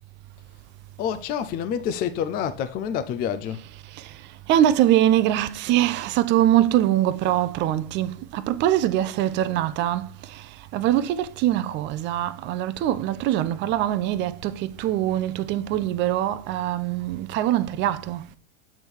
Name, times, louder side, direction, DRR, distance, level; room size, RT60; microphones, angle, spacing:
voice 1, 1.0-3.7, left 8 dB, 30° left, 0.5 m, -28 dB
voice 2, 4.5-18.2, right 12 dB, 35° right, 0.6 m, -23 dB
8.1 x 3.6 x 4.5 m
hypercardioid pair, 120°, 31 cm